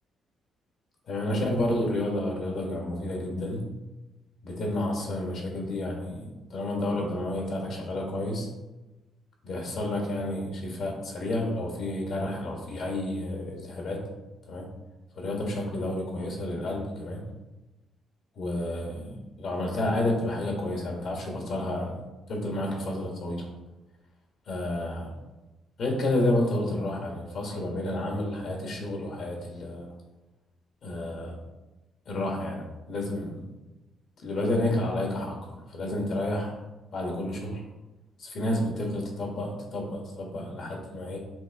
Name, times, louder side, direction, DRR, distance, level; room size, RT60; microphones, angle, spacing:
voice 1, 1.1-3.7 4.4-8.5 9.4-14.0 14.5-14.7 15.1-17.2 18.4-23.5 24.5-25.1 25.8-29.9 30.8-31.4 32.1-33.4 34.2-36.5 36.9-37.6 38.2-41.2, left 1 dB, 65° left, 1 dB, 1.4 m, -30 dB
6.2 x 2.5 x 3.4 m, 1.1 s
cardioid pair, 90°, 0 cm